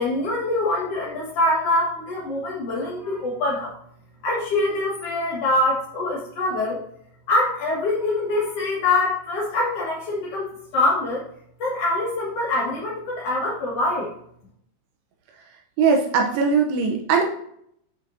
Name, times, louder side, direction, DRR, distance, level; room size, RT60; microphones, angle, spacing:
voice 1, 0.0-3.7 4.2-6.8 7.3-11.2 11.6-14.1, left 2 dB, 60° left, -5 dB, 1.7 m, -24 dB
voice 2, 15.8-17.2, right 5 dB, 80° right, 2 dB, 2.8 m, -20 dB
8.0 x 6.1 x 2.6 m, 0.69 s
omnidirectional pair, 4.8 m